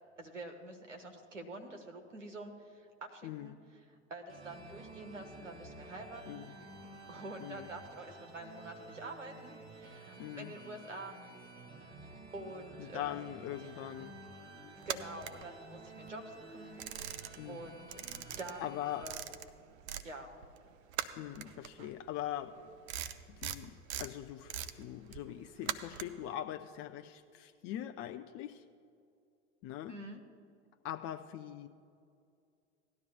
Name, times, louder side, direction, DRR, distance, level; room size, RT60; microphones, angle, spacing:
voice 1, 0.2-3.5 3.9-6.5 7.1-11.1 12.3-13.2 13.6-13.7 14.9-16.8 17.5-19.3 20.0-20.3 29.9-30.2, right 2 dB, 90° right, 4 dB, 1.2 m, -47 dB
voice 2, 3.2-3.6 6.3-6.5 7.4-7.7 10.2-10.5 12.8-14.2 17.4-17.7 18.6-19.1 21.2-22.6 23.3-28.6 29.6-30.0 30.8-31.7, left 12 dB, 40° left, 7 dB, 0.5 m, -42 dB
sound 1, 4.3-19.1, right 2 dB, 45° right, 2.6 m, -52 dB
sound 2, 14.8-16.1 16.4-17.6 17.9-20.1 20.4-26.3, right 10 dB, 65° right, 0.7 m, -42 dB
18.0 x 12.0 x 2.4 m, 2.3 s
figure-of-eight pair, 75°, 36 cm